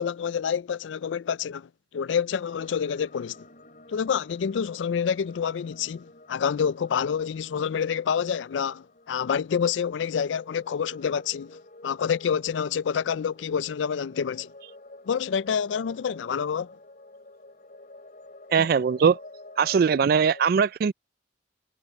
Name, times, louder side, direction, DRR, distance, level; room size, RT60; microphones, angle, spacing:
voice 1, 0.0-3.4 3.9-11.6 11.8-14.5 15.1-16.7, left 7 dB, 85° left, 0.4 m, -27 dB
sound 1, 2.3-20.4, left 2 dB, 45° left, 6.0 m, -49 dB
voice 2, 18.5-19.2 19.6-20.9, right 6 dB, 55° right, 0.3 m, -21 dB
head